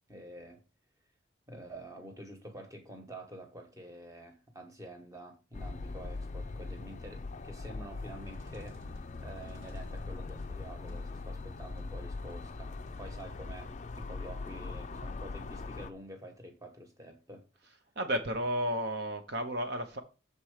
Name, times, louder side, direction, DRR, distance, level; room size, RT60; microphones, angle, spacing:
voice 1, 0.1-0.6 1.5-8.8 9.2-17.5, right 1 dB, 15° right, 1.2 m, -48 dB
sound 1, 5.5-15.9, left 3 dB, 35° left, 0.4 m, -41 dB
sound 2, 7.9-13.9, equal, 75° right, 1.6 m, -55 dB
voice 2, 18.0-20.0, equal, 55° right, 0.8 m, -32 dB
6.8 x 4.4 x 4.8 m
head